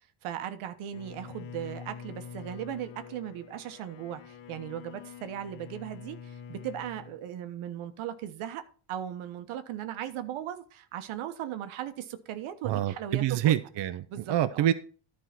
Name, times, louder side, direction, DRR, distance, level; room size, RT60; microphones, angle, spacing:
voice 1, 0.2-8.6 8.9-13.6 14.1-14.7, right 10 dB, 90° right, 1.2 m, -37 dB
Bowed string instrument, 0.9-7.2, left 7 dB, 65° left, 1.1 m, -46 dB
voice 2, 12.6-14.7, right 12 dB, 60° right, 0.8 m, -27 dB
11.0 x 4.8 x 5.9 m
cardioid pair, 115°, 48 cm